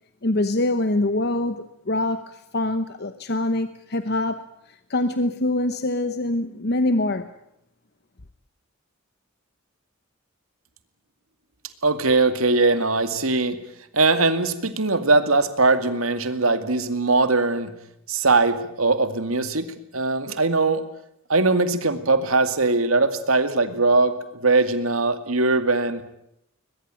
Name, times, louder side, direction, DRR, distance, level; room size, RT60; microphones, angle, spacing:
voice 1, 0.2-7.3, left 2 dB, 50° left, 1.0 m, -24 dB
voice 2, 11.8-13.6 13.9-17.7 18.1-20.8 21.3-26.0, right 3 dB, 80° right, 2.2 m, -21 dB
22.0 x 21.5 x 9.0 m
head